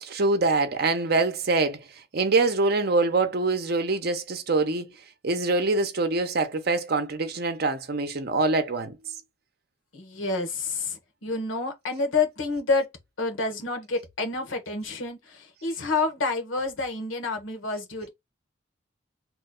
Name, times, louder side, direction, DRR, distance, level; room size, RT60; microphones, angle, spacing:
voice 1, 0.0-1.8 2.1-4.9 5.2-8.9, right 3 dB, 50° right, 0.7 m, -24 dB
voice 2, 9.9-12.9 13.2-18.1, left 3 dB, 80° left, 1.1 m, -28 dB
3.0 x 2.3 x 3.6 m
head